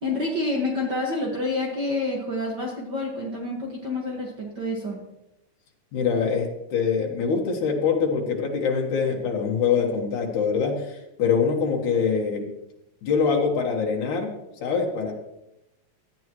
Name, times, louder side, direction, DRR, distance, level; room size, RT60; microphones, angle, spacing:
voice 1, 0.0-5.0, left 2 dB, 40° right, -2 dB, 2.0 m, -28 dB
voice 2, 5.9-12.5 13.0-14.3 14.6-15.1, left 6 dB, 80° left, 0 dB, 2.9 m, -24 dB
17.0 x 12.0 x 3.1 m, 0.91 s
omnidirectional pair, 3.4 m